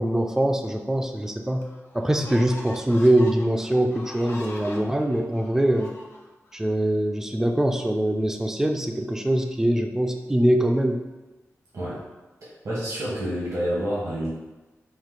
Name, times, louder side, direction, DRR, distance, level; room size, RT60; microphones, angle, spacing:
voice 1, 0.0-1.6 1.9-6.0 6.5-11.0, right 1 dB, 10° right, 4 dB, 0.3 m, -23 dB
sound 1, 0.9-1.0 1.6-6.6, left 1 dB, 50° left, 0.7 m, -43 dB
voice 2, 12.4-14.3, equal, 75° right, -8 dB, 1.4 m, -28 dB
4.3 x 2.7 x 3.8 m, 1.1 s
wide cardioid pair, 145°, 5 cm